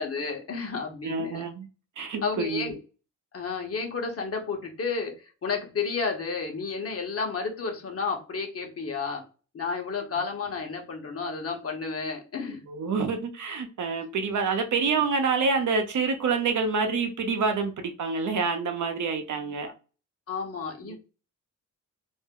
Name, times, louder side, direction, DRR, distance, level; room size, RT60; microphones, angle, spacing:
voice 1, 0.0-1.4 2.2-2.7 3.3-9.2 9.5-12.6 19.7-19.8 20.3-20.9, left 4 dB, 45° left, 0.9 m, -31 dB
voice 2, 1.0-1.7 2.0-2.7 12.7-19.7 20.9-21.0, right 4 dB, 70° right, 0.7 m, -27 dB
2.6 x 2.1 x 3.6 m
wide cardioid pair, 115°, 31 cm